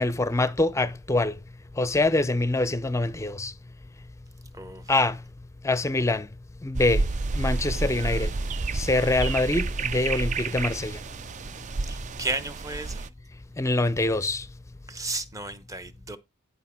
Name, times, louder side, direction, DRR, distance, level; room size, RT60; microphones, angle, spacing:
voice 1, 0.0-1.4 1.8-3.5 4.9-5.2 5.6-6.3 6.6-7.1 7.3-8.3 8.7-11.0 13.6-14.5, left 2 dB, 15° left, 0.5 m, -24 dB
voice 2, 4.5-4.9 11.9-13.1 14.9-16.2, right 2 dB, 15° right, 0.8 m, -34 dB
sound 1, 6.7-13.1, right 3 dB, 35° right, 0.4 m, -30 dB
10.5 x 5.0 x 4.3 m
head